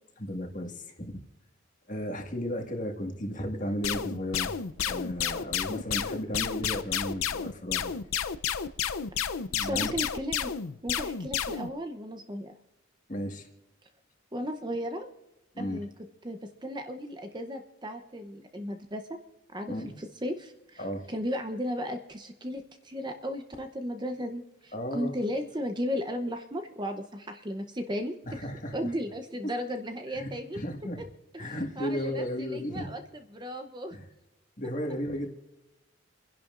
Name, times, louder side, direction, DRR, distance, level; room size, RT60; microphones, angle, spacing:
voice 1, 0.2-1.2 1.9-4.5 4.9-7.9 9.5-10.0 13.1-13.5 15.5-15.8 19.7-19.9 20.8-21.1 24.7-25.1 28.3-28.8 29.4-29.5 30.1-30.3 30.5-31.0 31.4-32.9 33.9-34.1 34.6-35.3, equal, 35° left, 3 dB, 1.8 m, -34 dB
sound 1, 3.8-11.7, left 8 dB, 85° left, 0.6 m, -31 dB
voice 2, 9.6-10.5 10.8-12.5 14.3-15.1 15.6-15.9 16.2-19.0 19.5-20.8 21.1-28.5 28.7-30.6 31.3-33.9, equal, 20° right, 6 dB, 0.7 m, -35 dB
29.0 x 11.0 x 2.5 m, 0.99 s
head